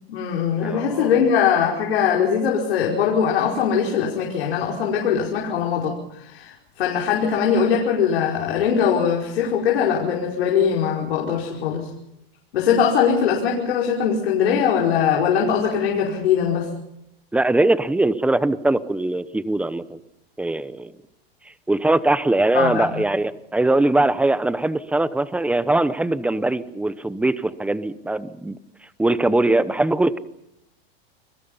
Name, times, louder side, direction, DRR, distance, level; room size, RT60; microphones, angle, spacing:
voice 1, 0.1-11.9 12.5-16.7 22.5-22.9, left 7 dB, 85° left, -2 dB, 5.3 m, -21 dB
voice 2, 0.6-1.1 17.3-20.0 20.4-20.9 21.7-28.6 29.0-30.2, right 2 dB, 5° right, 14 dB, 0.9 m, -21 dB
29.5 x 21.5 x 5.6 m, 0.83 s
supercardioid pair, 140°, 30 cm